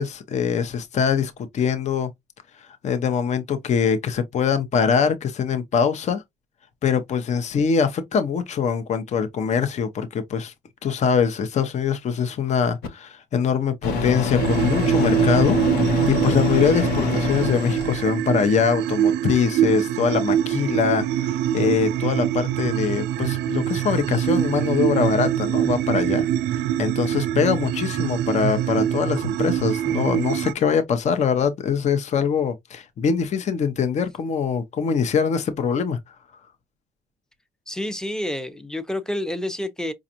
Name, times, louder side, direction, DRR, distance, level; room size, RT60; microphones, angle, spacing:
voice 1, 0.0-2.1 2.8-6.2 6.8-10.5 10.8-15.6 16.1-26.3 26.5-36.0, left 6 dB, 45° left, 0.7 m, -23 dB
Microwave oven, 12.8-12.9 13.8-18.1, left 4 dB, 75° left, 0.9 m, -25 dB
sound 1, 14.4-30.5, right 11 dB, 85° right, 0.4 m, -24 dB
voice 2, 37.7-39.9, left 1 dB, 5° left, 0.6 m, -29 dB
5.1 x 2.4 x 2.8 m
cardioid pair, 110°, 17 cm